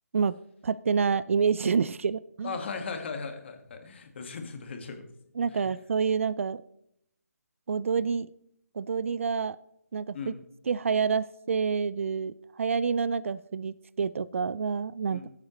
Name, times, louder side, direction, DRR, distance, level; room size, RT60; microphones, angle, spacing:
voice 1, 0.6-2.6 5.4-6.6 7.7-8.3 8.7-9.6 9.9-10.3 10.7-15.2, right 6 dB, 50° right, 18 dB, 0.4 m, -28 dB
voice 2, 2.4-5.1 5.5-5.6 10.1-10.3 15.1-15.3, left 5 dB, 45° left, 5 dB, 1.9 m, -37 dB
16.5 x 8.2 x 3.2 m, 0.75 s
figure-of-eight pair, 155°, 9 cm